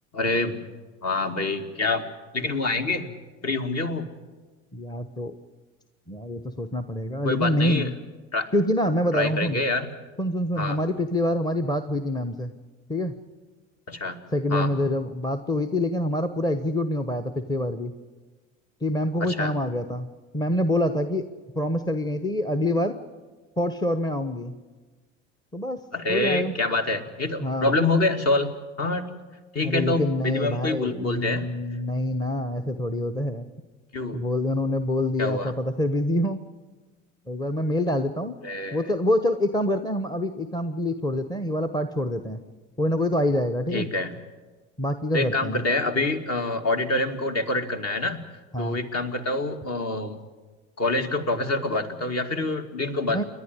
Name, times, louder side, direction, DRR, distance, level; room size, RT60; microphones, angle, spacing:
voice 1, 0.1-0.6 1.0-2.0 2.3-3.1 3.4-4.1 7.2-7.9 8.3-8.5 9.1-9.9 10.6-10.8 13.9-14.2 14.5-14.7 19.2-19.5 25.9-29.1 29.5-31.5 33.9-34.2 35.2-35.5 38.4-38.9 43.7-44.1 45.1-48.2 48.6-50.2 50.8-53.2, left 2 dB, 40° left, 6 dB, 2.4 m, -26 dB
voice 2, 4.7-5.4 6.1-7.9 8.5-9.6 10.2-12.5 12.9-13.1 14.3-17.9 18.8-21.3 21.5-23.0 23.6-24.6 25.5-25.8 26.1-26.5 27.4-27.7 29.6-33.5 34.1-36.4 37.3-38.3 38.7-42.4 42.8-43.9 44.8-45.6 48.5-48.8 53.1-53.2, left 1 dB, 10° left, 9 dB, 1.1 m, -26 dB
28.5 x 11.0 x 9.7 m, 1.3 s
hypercardioid pair, 70°, 39 cm